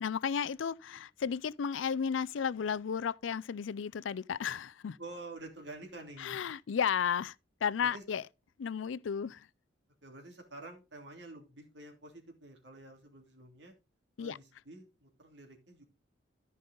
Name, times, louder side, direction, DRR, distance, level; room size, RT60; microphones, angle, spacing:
voice 1, 0.0-5.0 6.2-7.3 7.6-8.2 8.6-9.5 14.2-14.4, left 7 dB, 90° left, 0.4 m, -33 dB
voice 2, 5.0-6.4 7.8-8.0 10.0-13.7 14.2-15.8, right 2 dB, 70° right, 2.9 m, -49 dB
14.0 x 5.4 x 3.8 m
head